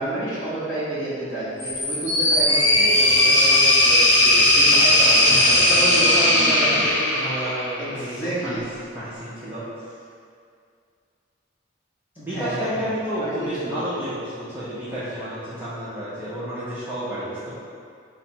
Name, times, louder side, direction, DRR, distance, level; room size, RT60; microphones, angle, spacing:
voice 1, 0.0-6.8 7.8-8.6 12.3-12.8 13.2-13.8, right 1 dB, 20° left, -13 dB, 0.9 m, -30 dB
sound 1, 1.6-7.8, left 1 dB, 85° left, 0.7 m, -17 dB
voice 2, 5.2-8.6 8.9-9.6 12.1-17.5, equal, 10° right, -12 dB, 0.6 m, -30 dB
4.8 x 2.1 x 4.3 m, 2.3 s
head